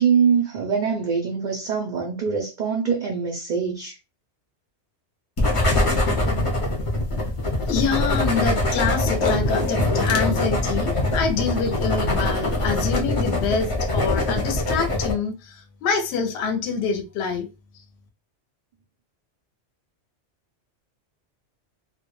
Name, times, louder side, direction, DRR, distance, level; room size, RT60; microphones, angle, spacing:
voice 1, 0.0-4.0, right 6 dB, 60° right, 0.5 m, -23 dB
sound 1, 5.4-15.1, left 2 dB, 40° left, 0.5 m, -23 dB
voice 2, 7.7-17.5, left 5 dB, 70° left, 0.8 m, -26 dB
2.1 x 2.1 x 2.9 m
omnidirectional pair, 1.2 m